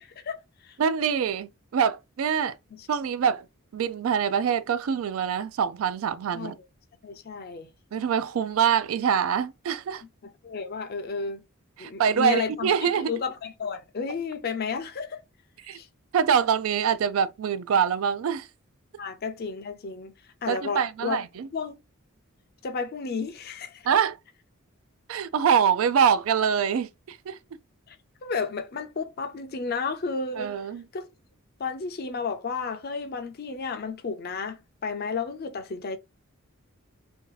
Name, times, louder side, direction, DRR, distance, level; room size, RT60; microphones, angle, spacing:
voice 1, 0.0-0.8 2.7-2.9 6.3-6.5 7.0-7.7 10.2-11.4 11.8-12.7 13.0-15.2 15.7-15.9 19.0-20.1 20.4-21.2 21.5-21.8 22.6-23.9 27.9-28.0 28.2-30.6 30.9-31.1 31.6-36.0, left 5 dB, 45° left, 0.5 m, -32 dB
voice 2, 0.8-2.6 2.9-3.5 3.7-6.5 7.9-10.0 11.8-13.1 15.7-15.8 16.1-18.5 20.5-21.5 23.9-24.2 25.1-27.4 30.4-30.8, right 7 dB, 75° right, 0.3 m, -24 dB
2.7 x 2.4 x 3.8 m
head